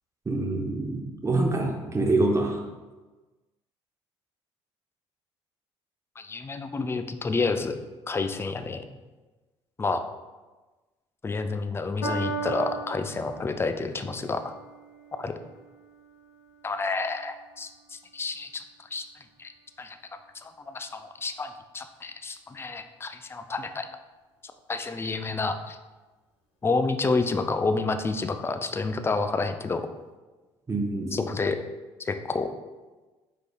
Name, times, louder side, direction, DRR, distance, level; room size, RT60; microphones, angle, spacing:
voice 1, 0.3-2.6 30.7-31.1, right 2 dB, 20° right, 1 dB, 0.8 m, -26 dB
voice 2, 6.2-7.8 8.1-8.8 9.8-10.0 11.2-14.5 15.2-15.3 16.6-18.6 18.9-19.0 19.4-19.5 19.8-20.0 20.4-23.9 24.7-25.8 26.6-29.8 31.1-31.6 32.0-32.5, left 3 dB, 15° left, 9 dB, 0.3 m, -29 dB
Piano, 12.0-18.6 19.4-19.5, right 2 dB, 85° left, 0.7 m, -39 dB
4.7 x 3.8 x 2.2 m, 1.2 s
figure-of-eight pair, 50°, 14 cm